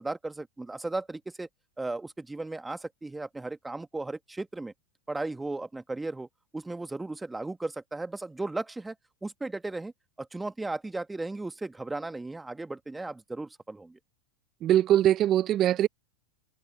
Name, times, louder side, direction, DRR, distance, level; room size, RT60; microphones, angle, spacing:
voice 1, 0.0-1.5 1.8-4.7 5.1-6.3 6.5-8.9 9.2-9.9 10.2-14.0, right 2 dB, 10° right, 1.3 m, -35 dB
voice 2, 14.6-15.9, right 12 dB, 40° right, 0.7 m, -22 dB
hypercardioid pair, 90°, 0 cm